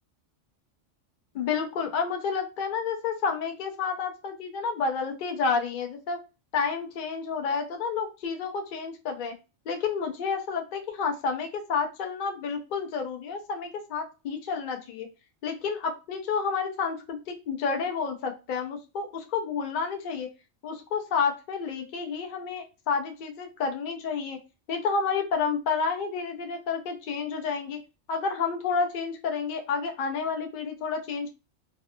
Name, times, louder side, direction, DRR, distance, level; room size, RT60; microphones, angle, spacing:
voice 1, 1.3-6.2 6.5-9.3 9.7-15.1 15.4-20.3 20.6-24.4 24.7-27.8 28.1-31.3, left 5 dB, 55° left, 4 dB, 0.6 m, -30 dB
2.6 x 2.2 x 2.5 m, 0.29 s
omnidirectional pair, 1.3 m